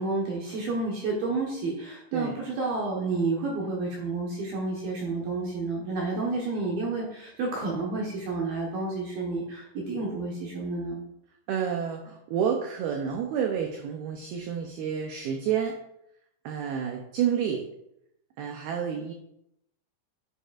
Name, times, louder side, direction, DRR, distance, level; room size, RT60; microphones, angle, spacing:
voice 1, 0.0-11.0, right 3 dB, 65° right, -3 dB, 2.6 m, -30 dB
voice 2, 11.5-15.8 16.4-17.6 18.4-19.1, right 8 dB, 85° right, 3 dB, 2.2 m, -29 dB
9.9 x 8.3 x 2.5 m, 0.80 s
omnidirectional pair, 5.4 m